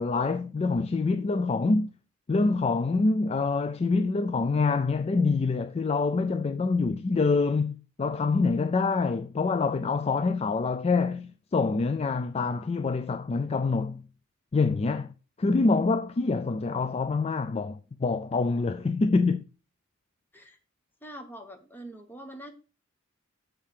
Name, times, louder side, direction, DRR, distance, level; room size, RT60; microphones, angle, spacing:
voice 1, 0.0-1.9 2.3-7.7 8.0-14.0 14.5-15.1 15.4-19.4, left 4 dB, 30° left, 0.3 m, -26 dB
voice 2, 21.0-22.5, right 1 dB, 10° left, 1.2 m, -44 dB
7.4 x 4.7 x 6.4 m
head